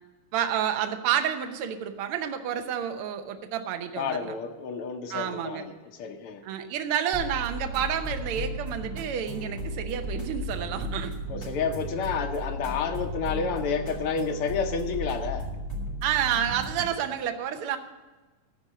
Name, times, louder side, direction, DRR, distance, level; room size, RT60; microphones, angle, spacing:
voice 1, 0.3-4.4 5.1-5.6 6.4-11.1 16.0-17.8, right 9 dB, 65° right, 7 dB, 1.4 m, -29 dB
voice 2, 4.0-6.4 11.3-15.5, left 6 dB, 80° left, 4 dB, 1.2 m, -30 dB
sound 1, 7.1-16.9, equal, 5° left, 3.0 m, -35 dB
14.5 x 5.3 x 8.4 m, 1.2 s
omnidirectional pair, 3.4 m